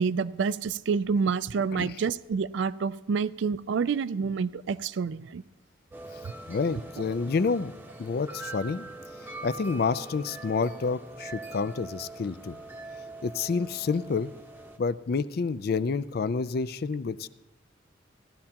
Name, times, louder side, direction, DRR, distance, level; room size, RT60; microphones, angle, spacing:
voice 1, 0.0-5.4, right 5 dB, 65° right, 16 dB, 0.3 m, -28 dB
sound 1, 5.9-14.8, right 2 dB, 10° right, 0.7 m, -43 dB
voice 2, 6.5-7.7 8.0-8.9 9.4-12.6 13.2-14.3 14.8-17.3, left 4 dB, 50° left, 16 dB, 0.4 m, -29 dB
17.0 x 12.0 x 2.9 m, 0.99 s
head